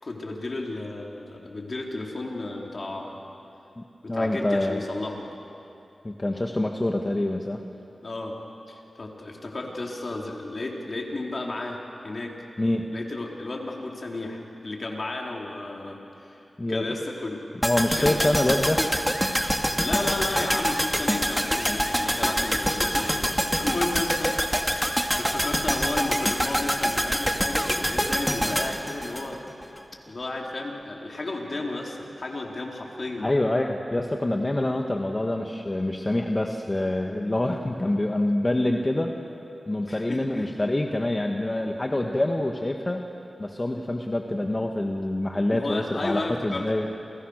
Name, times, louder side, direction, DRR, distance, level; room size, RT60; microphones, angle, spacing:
voice 1, 0.0-3.2 4.0-5.3 8.0-8.4 8.7-11.8 12.0-12.3 12.9-17.4 18.0-18.3 19.8-24.3 24.7-29.4 30.1-33.3 39.9-40.5 45.3-47.0, left 2 dB, 55° left, 0 dB, 4.4 m, -33 dB
voice 2, 4.1-4.8 6.0-7.6 12.6-12.9 16.6-16.9 17.6-18.8 33.2-39.1 39.7-43.0 43.4-46.9, left 1 dB, 30° left, 3 dB, 1.8 m, -26 dB
sound 1, 17.6-29.8 30.1-30.2, equal, ahead, 2.4 m, -25 dB
29.0 x 29.0 x 6.7 m, 2.8 s
cardioid pair, 40°, 0 cm